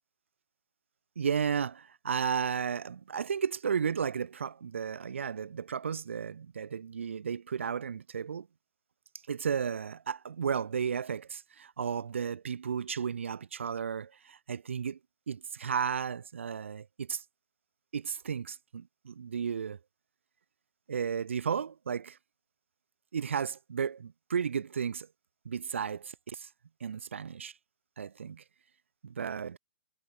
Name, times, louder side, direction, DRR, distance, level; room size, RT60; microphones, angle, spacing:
voice 1, 1.2-8.5 9.3-15.0 15.3-17.2 17.9-19.8 20.9-22.2 23.1-25.1 25.4-26.5 26.8-27.5 28.0-28.4 29.0-29.6, right 7 dB, 85° right, 7.8 m, -34 dB
hypercardioid pair, 140°, 6 cm